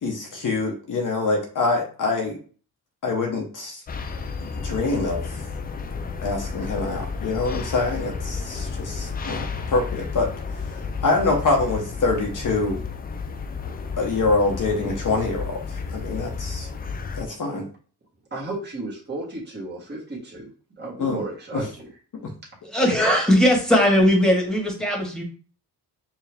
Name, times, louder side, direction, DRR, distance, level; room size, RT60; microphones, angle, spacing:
voice 1, 0.0-2.4 3.0-3.8 4.4-5.4 6.2-10.3 10.6-12.8 14.0-16.7 17.2-17.7 21.0-21.2 21.5-21.6 22.2-22.3, left 3 dB, 50° left, 0 dB, 0.9 m, -25 dB
sound 1, 3.9-17.3, left 5 dB, 25° left, 0.3 m, -32 dB
voice 2, 18.3-20.5 20.8-21.9, right 2 dB, 25° right, -5 dB, 1.6 m, -33 dB
voice 3, 22.7-25.2, equal, ahead, -1 dB, 1.6 m, -19 dB
4.7 x 2.3 x 3.4 m, 0.41 s
cardioid pair, 85°, 41 cm